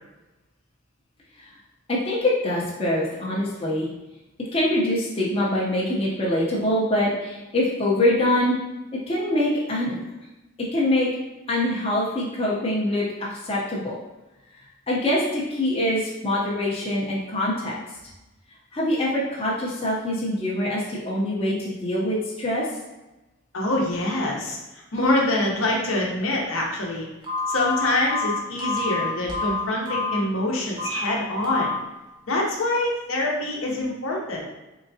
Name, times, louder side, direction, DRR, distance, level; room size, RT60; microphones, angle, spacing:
voice 1, 1.9-3.9 4.5-8.6 9.1-10.0 10.7-11.1 11.5-14.0 14.9-17.8 18.7-22.7, left 1 dB, 25° left, -6 dB, 0.6 m, -24 dB
voice 2, 23.5-27.1 27.5-31.7 32.3-34.5, left 1 dB, 65° left, -2 dB, 0.8 m, -25 dB
Telephone, 27.2-30.2 30.7-31.0 31.4-31.8, left 3 dB, 20° right, 0.8 m, -27 dB
3.8 x 3.3 x 2.7 m, 1.0 s
head